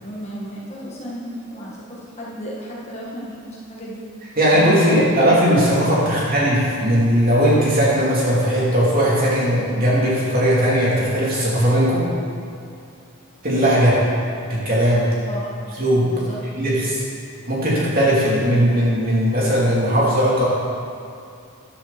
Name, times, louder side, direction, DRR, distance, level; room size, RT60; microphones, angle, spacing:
voice 1, 0.0-4.0 4.5-5.1 15.3-15.5 16.0-16.4, equal, 30° left, -5 dB, 1.8 m, -34 dB
voice 2, 4.4-12.0 13.4-14.0 14.5-15.1 15.8-16.1 16.6-17.0 17.5-20.4, equal, 40° right, -7 dB, 3.4 m, -18 dB
13.5 x 10.0 x 4.4 m, 2.5 s
head